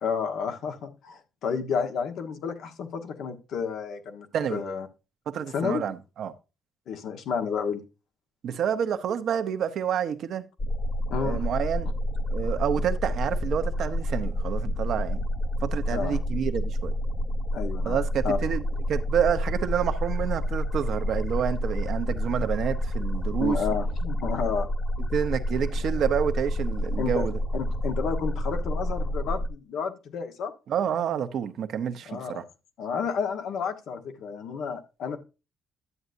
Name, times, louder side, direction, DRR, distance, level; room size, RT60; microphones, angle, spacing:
voice 1, 0.0-4.9 5.5-5.8 6.9-7.8 11.1-11.4 15.9-16.2 17.5-18.0 18.2-18.4 23.4-24.7 27.0-27.2 27.5-30.5 32.1-32.4 32.8-35.2, left 6 dB, 80° left, 1.3 m, -31 dB
voice 2, 5.3-6.3 8.4-10.4 11.2-11.9 12.3-15.2 15.6-16.9 17.8-18.6 18.9-23.6 25.1-27.4 30.7-32.4, right 8 dB, 70° right, 0.9 m, -28 dB
sound 1, 10.6-29.5, equal, 30° left, 0.7 m, -29 dB
11.0 x 7.9 x 2.6 m
cardioid pair, 90°, 0 cm